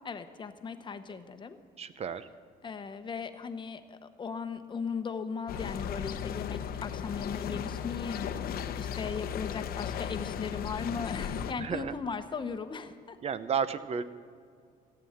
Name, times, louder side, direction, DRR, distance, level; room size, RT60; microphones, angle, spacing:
voice 1, 0.0-1.6 2.6-13.2, left 5 dB, 30° left, 9 dB, 1.0 m, -38 dB
voice 2, 1.8-2.3 11.6-11.9 13.2-14.0, right 7 dB, 40° right, 14 dB, 0.8 m, -32 dB
sound 1, 5.5-11.5, left 8 dB, 60° left, 0.8 m, -36 dB
15.0 x 7.9 x 8.8 m, 2.1 s
cardioid pair, 110°, 17 cm